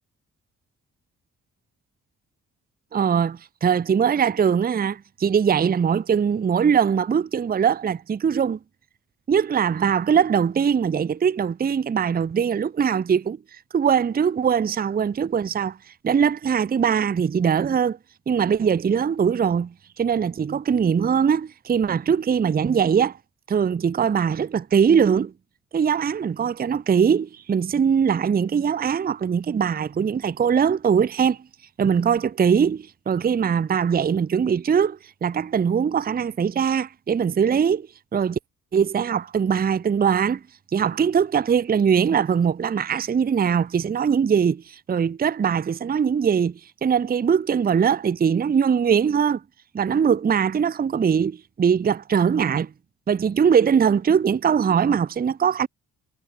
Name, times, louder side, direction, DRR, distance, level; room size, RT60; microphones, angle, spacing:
voice 1, 2.9-8.6 9.3-13.4 13.7-15.8 16.0-18.0 18.3-23.2 23.5-25.3 25.7-31.4 31.8-37.9 38.1-38.4 38.7-40.4 40.7-49.4 49.7-52.7 53.1-55.7, right 7 dB, 25° right, 0.5 m, -21 dB
supercardioid pair, 50°, 36 cm